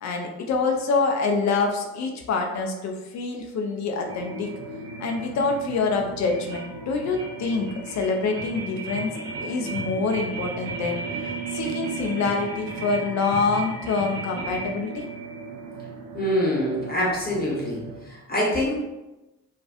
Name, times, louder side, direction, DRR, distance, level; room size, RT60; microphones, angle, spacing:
voice 1, 0.0-4.5 5.0-9.1 9.4-11.0 11.5-15.1, left 4 dB, 40° left, 3 dB, 0.4 m, -26 dB
sound 1, 4.0-18.0, right 4 dB, 60° right, 0.8 m, -35 dB
voice 2, 16.1-17.8 18.1-18.7, equal, 20° left, -5 dB, 0.8 m, -25 dB
2.5 x 2.3 x 2.4 m, 1.0 s
figure-of-eight pair, 45°, 44 cm